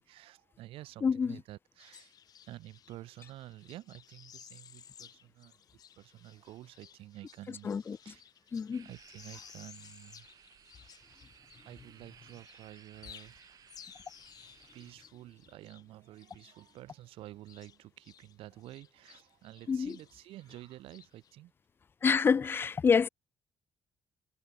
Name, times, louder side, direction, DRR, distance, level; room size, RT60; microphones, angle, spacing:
voice 1, 0.0-2.1 2.4-5.6 6.0-8.5 8.8-10.3 11.6-13.6 14.7-21.5, right 15 dB, 85° right, 4.3 m, -50 dB
voice 2, 1.0-1.4 7.5-8.1 8.5-8.9 19.7-20.0 22.0-23.1, left 6 dB, 25° left, 0.7 m, -28 dB
sound 1, 1.8-12.0 12.2-18.3 18.6-21.3, left 9 dB, 45° left, 3.5 m, -57 dB
sound 2, 8.7-14.9, right 9 dB, 40° right, 6.0 m, -59 dB
cardioid pair, 175°, 9 cm